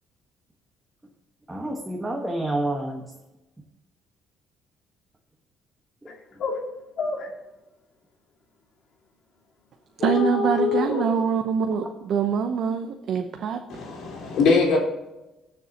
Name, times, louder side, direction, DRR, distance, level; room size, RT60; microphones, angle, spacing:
voice 1, 1.5-3.0 6.0-6.4 11.8-11.9, right 1 dB, 10° right, 0 dB, 1.3 m, -29 dB
sound 1, 6.1-6.2 6.4-6.6 7.0-7.3 10.0-11.1, left 4 dB, 55° left, 2.2 m, -25 dB
voice 2, 10.0-13.6, right 7 dB, 55° right, 5 dB, 0.8 m, -24 dB
voice 3, 13.7-14.8, left 4 dB, 75° left, -2 dB, 3.9 m, -21 dB
20.0 x 7.0 x 2.9 m, 0.98 s
cardioid pair, 145°, 0 cm